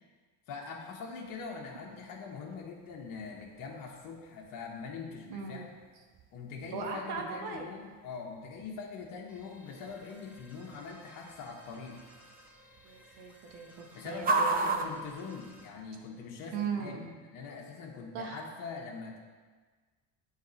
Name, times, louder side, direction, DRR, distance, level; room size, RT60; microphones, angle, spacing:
voice 1, 0.5-5.7 6.3-12.0 13.9-17.1 17.3-19.2, left 5 dB, 55° left, -2 dB, 1.1 m, -43 dB
sound 1, 1.2-16.1, right 3 dB, 25° right, 0.4 m, -40 dB
voice 2, 5.3-5.7 6.7-7.7 12.8-14.9 16.5-17.1 18.1-18.4, right 6 dB, 80° right, 2 dB, 1.1 m, -38 dB
sound 2, 9.3-15.7, equal, 5° right, 1.0 m, -58 dB
9.3 x 3.3 x 3.9 m, 1.4 s
cardioid pair, 120°, 40 cm